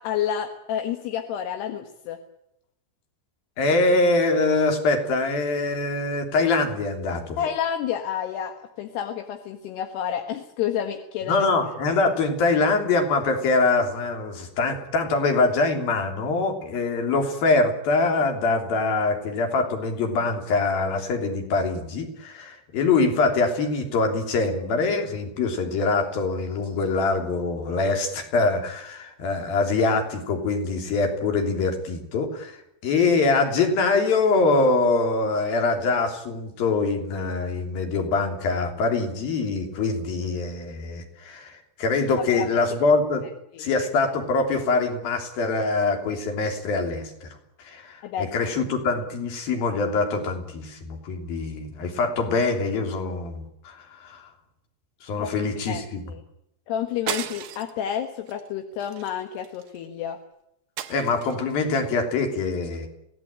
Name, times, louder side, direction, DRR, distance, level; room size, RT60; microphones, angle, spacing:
voice 1, 0.0-2.2 7.4-11.5 42.3-42.5 43.5-43.7 48.0-48.3 55.2-55.3 55.7-55.8 56.1-56.2 56.7-60.2, left 9 dB, 65° left, 5 dB, 3.1 m, -29 dB
voice 2, 3.6-7.4 11.3-43.2 43.6-47.3 47.6-54.2 55.0-56.0 60.9-62.9, left 3 dB, 50° left, 5 dB, 4.6 m, -24 dB
sound 1, 57.1-57.8 58.3-58.5 58.8-59.8 60.8-61.5, right 11 dB, 90° right, 1.9 m, -34 dB
25.5 x 17.5 x 9.0 m, 0.82 s
omnidirectional pair, 6.0 m